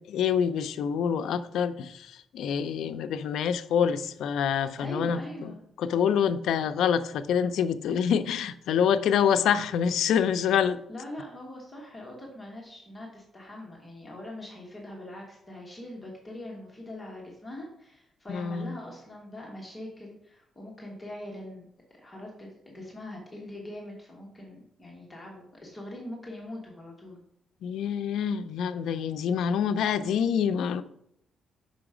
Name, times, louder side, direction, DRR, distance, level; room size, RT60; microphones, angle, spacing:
voice 1, 0.0-5.5 5.8-10.8 18.3-18.8 27.6-30.8, left 8 dB, 90° left, 0.4 m, -26 dB
voice 2, 4.8-5.6 10.9-21.7 22.0-27.2, left 1 dB, 15° left, 1.2 m, -42 dB
5.6 x 4.9 x 4.9 m
cardioid pair, 165°, 0 cm